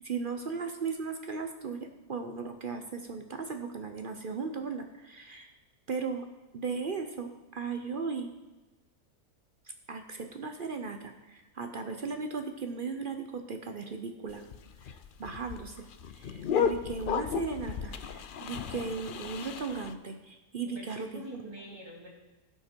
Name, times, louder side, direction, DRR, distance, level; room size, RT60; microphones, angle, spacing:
voice 1, 0.0-5.5 5.9-6.3 6.5-8.3 9.9-14.4 15.2-15.9 16.2-21.2, right 4 dB, 50° right, 6 dB, 0.7 m, -37 dB
sound 1, 14.3-19.9, left 7 dB, 90° left, 0.4 m, -34 dB
voice 2, 20.6-22.2, left 1 dB, 15° right, -3 dB, 2.5 m, -45 dB
16.5 x 5.8 x 4.5 m, 1.1 s
omnidirectional pair, 1.6 m